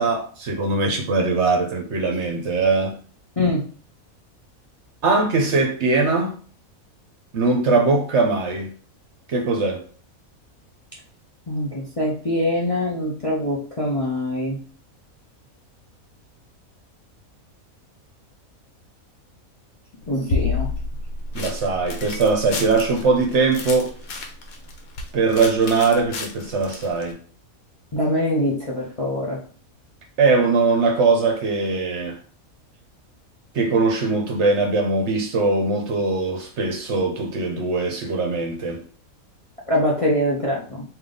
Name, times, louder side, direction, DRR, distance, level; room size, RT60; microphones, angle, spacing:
voice 1, 0.0-3.0 5.0-6.3 7.3-8.7 9.3-9.8 21.3-23.9 25.1-27.2 30.2-32.2 33.5-38.8, right 3 dB, 60° right, 0.9 m, -21 dB
voice 2, 3.4-3.7 11.5-14.6 20.1-20.7 27.9-29.4 39.7-40.8, left 1 dB, 35° left, 0.6 m, -23 dB
sound 1, 20.0-27.1, left 3 dB, 75° left, 1.2 m, -30 dB
3.4 x 2.8 x 3.8 m
omnidirectional pair, 1.5 m